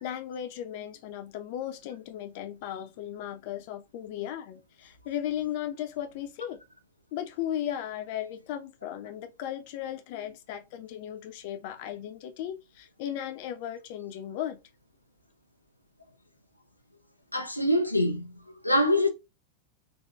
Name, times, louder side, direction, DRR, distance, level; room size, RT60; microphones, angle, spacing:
voice 1, 0.0-6.6 7.1-14.6, left 11 dB, 50° left, 0.7 m, -36 dB
voice 2, 17.3-19.1, left 1 dB, 90° left, 0.4 m, -25 dB
4.0 x 2.7 x 2.3 m
figure-of-eight pair, 90°, 0 cm